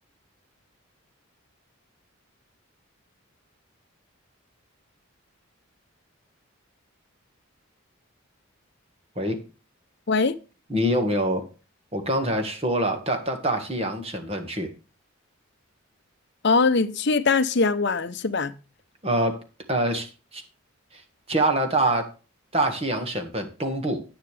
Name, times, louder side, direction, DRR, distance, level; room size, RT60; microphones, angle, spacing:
voice 1, 10.7-11.5 11.9-14.7 19.0-19.4 19.7-20.4 20.9-21.0 21.3-22.1 22.5-24.0, right 1 dB, 30° right, 1.7 m, -25 dB
voice 2, 16.4-18.5, left 4 dB, 55° left, 0.8 m, -22 dB
10.5 x 9.8 x 3.3 m
head